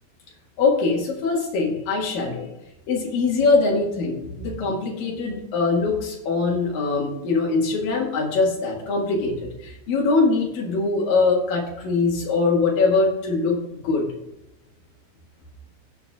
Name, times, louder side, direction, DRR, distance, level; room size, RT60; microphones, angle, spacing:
voice 1, 0.6-2.5 2.9-13.6 13.8-14.1, left 3 dB, 55° left, -1 dB, 2.9 m, -22 dB
16.5 x 7.0 x 2.4 m, 0.88 s
omnidirectional pair, 5.6 m